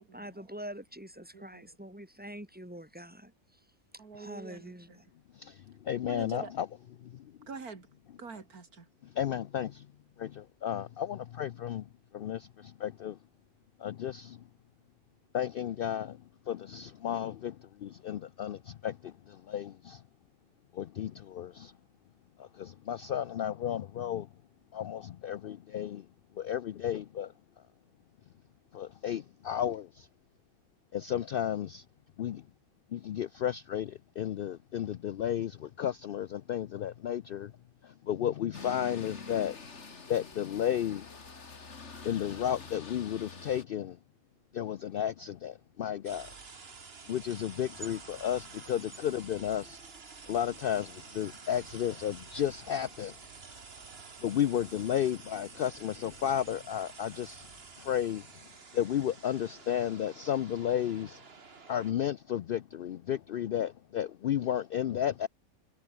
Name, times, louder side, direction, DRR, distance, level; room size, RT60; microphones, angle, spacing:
voice 1, 0.1-3.6 4.1-5.0, right 1 dB, 5° right, 4.1 m, -45 dB
voice 2, 1.3-1.6 4.0-4.7 6.1-6.5 7.5-7.9 8.2-8.9, right 4 dB, 85° right, 3.0 m, -44 dB
voice 3, 5.3-6.7 7.0-7.3 9.0-9.9 10.2-13.2 13.8-14.4 15.3-20.0 20.7-21.7 22.4-24.3 24.7-26.1 26.4-27.3 28.7-30.1 30.9-31.9 32.2-32.5 32.9-37.5 37.8-39.6 40.1-41.1 42.0-44.0 44.5-46.3 47.1-49.8 50.3-53.2 54.2-57.5 57.8-58.3 58.7-61.2 61.7-65.3, left 10 dB, 80° left, 0.5 m, -33 dB
sound 1, 38.5-43.6, left 4 dB, 50° left, 2.5 m, -46 dB
sound 2, 46.0-61.9, right 4 dB, 45° right, 1.9 m, -50 dB
omnidirectional pair, 1.5 m